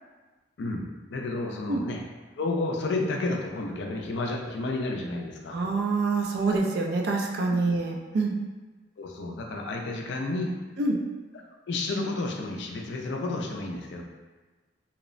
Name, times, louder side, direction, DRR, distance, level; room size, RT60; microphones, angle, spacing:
voice 1, 1.1-2.0 2.4-5.6 7.5-7.6 9.0-10.5 11.7-14.0, left 2 dB, 65° left, 1 dB, 0.3 m, -31 dB
voice 2, 5.5-8.4 10.8-11.0, right 3 dB, 55° right, 1 dB, 0.3 m, -26 dB
2.9 x 2.0 x 2.4 m, 1.3 s
head